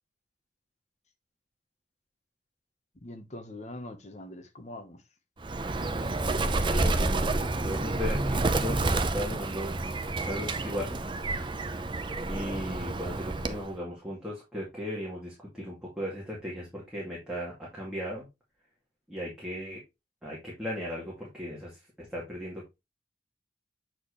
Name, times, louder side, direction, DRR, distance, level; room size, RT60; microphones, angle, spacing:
voice 1, 3.0-5.0, left 1 dB, 40° left, 1.1 m, -43 dB
Bird, 5.4-13.7, right 2 dB, 25° right, 0.6 m, -29 dB
voice 2, 6.7-7.3 7.6-8.8 9.1-9.7 10.3-11.0 12.3-18.3 19.1-19.8 20.2-21.7 22.0-22.6, left 1 dB, 5° right, 2.1 m, -36 dB
7.6 x 4.4 x 3.1 m
head